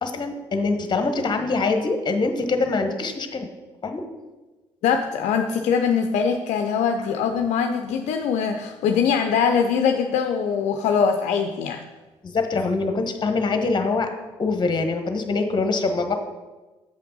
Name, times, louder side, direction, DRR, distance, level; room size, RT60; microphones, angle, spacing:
voice 1, 0.0-3.5 3.8-4.0 12.2-14.1 14.4-16.1, left 3 dB, 35° left, 6 dB, 1.1 m, -24 dB
voice 2, 4.8-11.8, left 6 dB, 65° left, 5 dB, 0.5 m, -22 dB
7.0 x 5.7 x 5.4 m, 1.2 s
hypercardioid pair, 50°, 13 cm